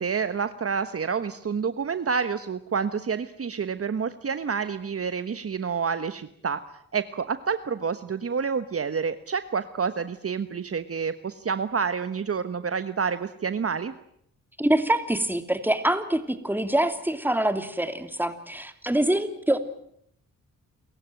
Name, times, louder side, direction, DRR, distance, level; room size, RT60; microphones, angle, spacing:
voice 1, 0.0-6.6 6.9-13.9, right 6 dB, 45° right, 11 dB, 1.3 m, -28 dB
voice 2, 14.6-19.6, right 1 dB, 5° right, 9 dB, 2.9 m, -25 dB
28.5 x 15.0 x 9.2 m, 0.71 s
cardioid pair, 60°, 32 cm